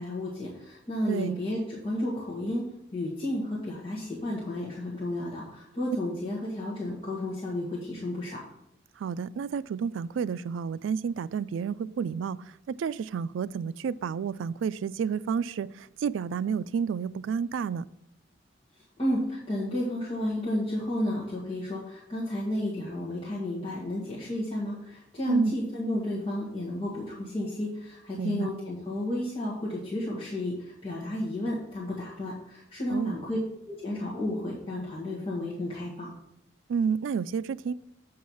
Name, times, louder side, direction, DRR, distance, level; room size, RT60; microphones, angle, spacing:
voice 1, 0.0-2.7 2.9-8.4 18.7-33.4 33.7-36.1, left 1 dB, 30° left, 1.9 m, -32 dB
voice 2, 1.1-1.4 9.0-17.9 25.3-25.5 28.2-28.5 32.9-33.2 36.7-37.7, right 6 dB, 90° right, 0.3 m, -30 dB
8.4 x 4.7 x 5.5 m
head